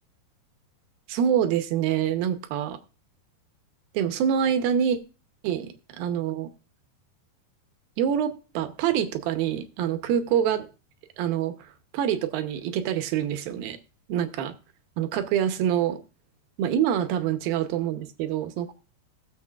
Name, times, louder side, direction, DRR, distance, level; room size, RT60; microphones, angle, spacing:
voice 1, 1.1-2.8 3.9-5.0 5.4-6.5 8.0-10.7 11.2-11.5 11.9-13.8 14.1-14.5 15.0-16.0 16.6-18.7, right 9 dB, 75° right, 9 dB, 2.6 m, -26 dB
20.0 x 7.1 x 2.4 m, 0.32 s
omnidirectional pair, 4.4 m